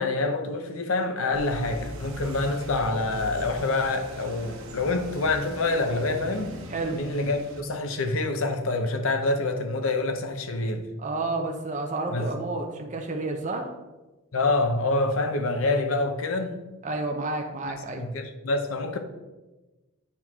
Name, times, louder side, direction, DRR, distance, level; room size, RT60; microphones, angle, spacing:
voice 1, 0.0-6.5 6.9-10.9 12.1-12.3 14.3-16.6 17.9-19.0, left 2 dB, 70° left, 0.8 m, -26 dB
sound 1, 1.3-7.6, right 1 dB, 65° right, 1.1 m, -40 dB
voice 2, 11.0-13.7 16.8-18.0, right 2 dB, 35° right, 0.8 m, -30 dB
8.6 x 4.5 x 3.7 m
head